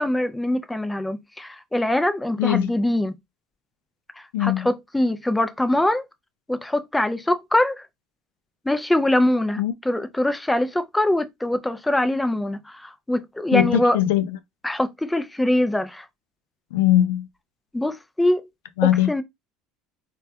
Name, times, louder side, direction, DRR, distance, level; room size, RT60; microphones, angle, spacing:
voice 1, 0.0-3.1 4.2-6.1 6.5-7.9 8.7-14.0 14.6-16.1 17.7-18.4 19.1-19.2, left 1 dB, 10° left, 0.3 m, -23 dB
voice 2, 2.4-2.7 4.3-4.7 9.6-9.7 13.5-14.4 16.7-17.3 18.8-19.1, left 13 dB, 85° left, 0.3 m, -20 dB
2.2 x 2.1 x 2.6 m
supercardioid pair, 100°, 0 cm